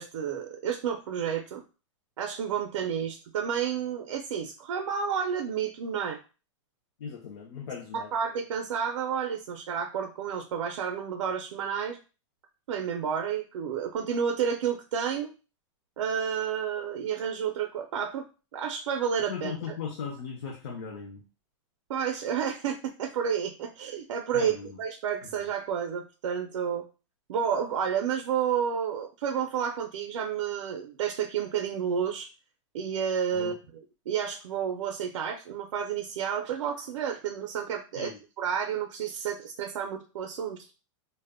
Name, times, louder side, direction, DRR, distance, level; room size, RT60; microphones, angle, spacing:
voice 1, 0.0-1.6 2.2-6.2 7.9-12.0 12.7-15.3 16.0-18.3 18.5-19.5 21.9-26.9 27.3-32.3 32.7-33.6 34.1-40.7, right 7 dB, 75° right, 4 dB, 0.4 m, -30 dB
voice 2, 7.0-8.1 19.3-21.2 24.3-24.8 25.2-25.3 33.3-33.5 38.0-38.2, left 6 dB, 55° left, -1 dB, 0.5 m, -38 dB
2.1 x 2.0 x 3.4 m, 0.33 s
supercardioid pair, 175°, 16 cm